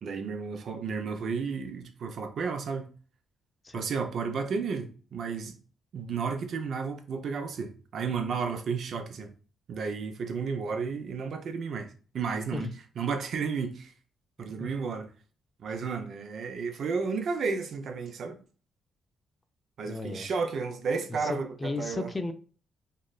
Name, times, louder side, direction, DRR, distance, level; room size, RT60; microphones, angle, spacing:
voice 1, 0.0-2.9 3.7-5.6 5.9-9.3 9.7-12.7 13.0-13.9 14.4-15.1 15.6-18.4 19.8-22.1, right 5 dB, 60° right, 0.4 m, -32 dB
voice 2, 19.9-20.3 21.2-22.3, left 3 dB, 25° left, 0.3 m, -34 dB
2.9 x 2.0 x 2.2 m
cardioid pair, 90°, 0 cm